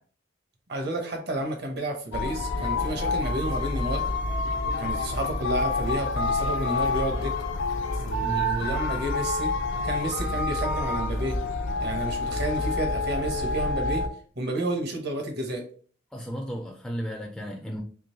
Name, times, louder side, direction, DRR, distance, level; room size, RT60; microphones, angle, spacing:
voice 1, 0.7-4.0 4.6-7.4 8.0-9.5 9.8-11.4 11.8-14.1 14.4-15.6, right 1 dB, 55° right, 1.0 m, -31 dB
sound 1, 2.1-14.1, left 2 dB, 80° left, 0.6 m, -28 dB
voice 2, 8.2-8.6 16.1-17.8, equal, 5° left, 0.4 m, -34 dB
3.7 x 3.0 x 2.9 m
head